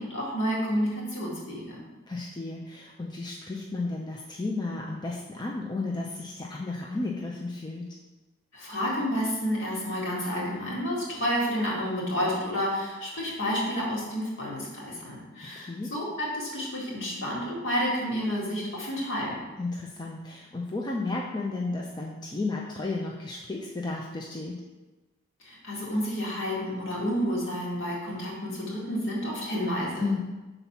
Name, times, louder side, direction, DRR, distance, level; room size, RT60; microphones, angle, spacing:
voice 1, 0.0-1.8 8.5-19.4 25.4-30.1, equal, 60° left, -4 dB, 2.0 m, -30 dB
voice 2, 2.1-7.9 15.5-15.9 19.6-24.6 30.0-30.2, left 3 dB, 20° left, -2 dB, 0.5 m, -33 dB
5.9 x 4.0 x 5.8 m, 1.1 s
head